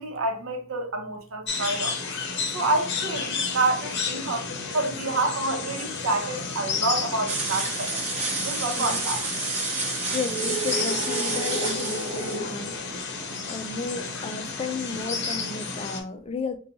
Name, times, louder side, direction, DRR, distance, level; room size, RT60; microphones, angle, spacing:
voice 1, 0.0-2.0 2.5-4.5 4.7-8.0 8.3-9.3, right 2 dB, 80° right, 0.8 m, -28 dB
sound 1, 1.5-16.0, left 3 dB, 55° left, 0.7 m, -31 dB
sound 2, 7.3-12.4, right 3 dB, 35° right, 0.9 m, -30 dB
voice 2, 10.1-13.0 13.4-16.6, left 4 dB, 30° left, 0.3 m, -33 dB
3.9 x 2.3 x 2.7 m
head